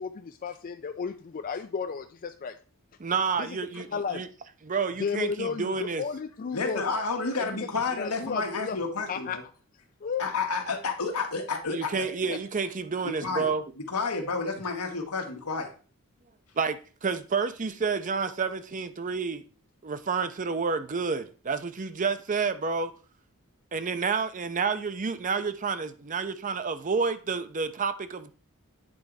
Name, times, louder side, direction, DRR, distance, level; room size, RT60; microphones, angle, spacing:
voice 1, 0.0-2.6 3.4-4.2 5.0-6.8 7.4-7.7 8.0-8.8 9.1-9.4 10.0-10.2 12.3-12.4, left 5 dB, 40° left, 0.4 m, -33 dB
voice 2, 3.0-4.3 4.6-6.0 11.7-13.6 16.6-19.4 19.8-22.9 23.7-28.3, right 5 dB, 35° right, 0.5 m, -29 dB
voice 3, 6.5-9.4 10.2-12.1 13.0-13.5 13.8-15.7, left 4 dB, 90° left, 1.4 m, -30 dB
8.6 x 3.8 x 4.6 m
head